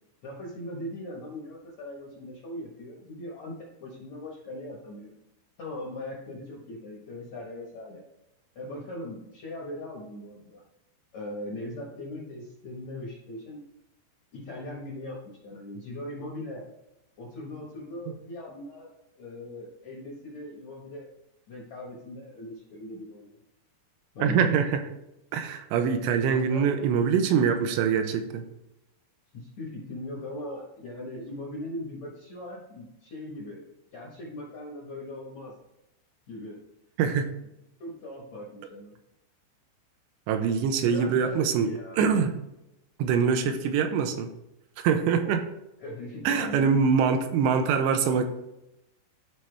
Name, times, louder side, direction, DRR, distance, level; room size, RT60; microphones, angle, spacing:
voice 1, 0.2-5.1 5.6-8.0 8.5-10.6 11.1-13.6 14.3-15.2 15.4-16.7 17.2-18.9 19.2-21.1 21.5-23.4 24.1-24.6 26.5-27.2 29.3-33.6 33.9-35.5 36.3-36.6 37.8-39.0 40.8-42.0 45.8-46.8, left 1 dB, 65° left, -3 dB, 1.7 m, -39 dB
voice 2, 24.2-24.8 25.3-28.4 37.0-37.3 40.3-42.4 43.0-44.3 44.8-45.5 46.2-48.2, right 6 dB, 85° right, 7 dB, 2.9 m, -24 dB
12.5 x 4.3 x 3.4 m, 0.88 s
omnidirectional pair, 5.1 m